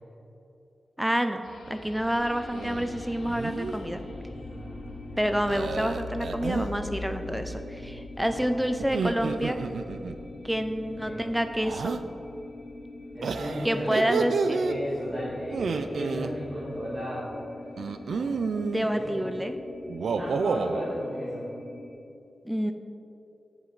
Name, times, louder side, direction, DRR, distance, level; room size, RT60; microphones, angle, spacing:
voice 1, 1.0-4.0 5.2-9.6 10.4-12.0 13.6-14.6 18.6-19.6 22.5-22.7, equal, 5° right, 8 dB, 0.4 m, -28 dB
sound 1, 1.4-20.1, left 2 dB, 75° left, 0.9 m, -45 dB
sound 2, 2.2-21.9, left 2 dB, 50° left, 1.2 m, -44 dB
sound 3, 2.5-2.9 3.2-3.8 5.5-6.7 8.8-10.2 11.6-12.0 13.2-14.8 15.5-16.3 17.8-18.9 19.9-20.9, right 4 dB, 85° right, 0.3 m, -30 dB
voice 2, 4.4-5.2 8.2-8.8 11.0-11.2 13.1-17.3 18.0-18.3 18.9-19.1 20.1-21.5, equal, 25° right, -9 dB, 1.6 m, -36 dB
7.7 x 7.2 x 4.0 m, 2.8 s
wide cardioid pair, 140°, 0 cm